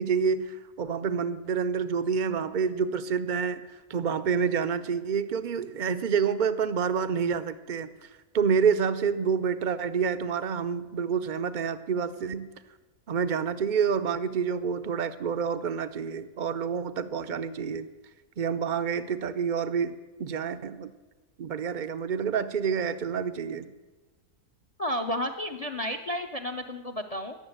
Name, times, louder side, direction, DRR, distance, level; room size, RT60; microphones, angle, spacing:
voice 1, 0.0-3.6 3.9-7.9 8.3-12.5 13.1-17.9 18.4-20.9 21.4-23.7, right 6 dB, 55° right, 12 dB, 0.5 m, -28 dB
voice 2, 24.8-27.4, equal, 40° left, 8 dB, 0.6 m, -32 dB
19.5 x 7.1 x 7.9 m, 1.2 s
omnidirectional pair, 1.6 m